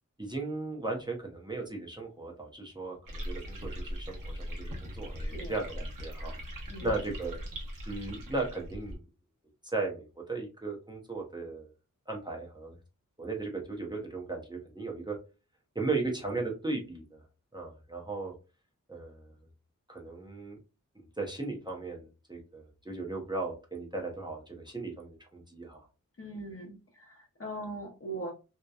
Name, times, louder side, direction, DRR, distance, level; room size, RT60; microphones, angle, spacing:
voice 1, 0.2-6.4 6.8-7.4 7.9-9.0 9.6-11.7 12.1-12.7 13.2-15.2 15.7-17.2 17.5-18.3 18.9-19.3 19.9-20.6 21.2-25.9, right 3 dB, 15° right, -1 dB, 0.6 m, -36 dB
sound 1, 3.1-9.0, equal, 75° right, 0.9 m, -40 dB
voice 2, 5.2-5.6 6.7-6.9 26.2-28.3, right 1 dB, 45° left, 0 dB, 0.7 m, -41 dB
2.7 x 2.1 x 2.2 m, 0.31 s
wide cardioid pair, 80°, 32 cm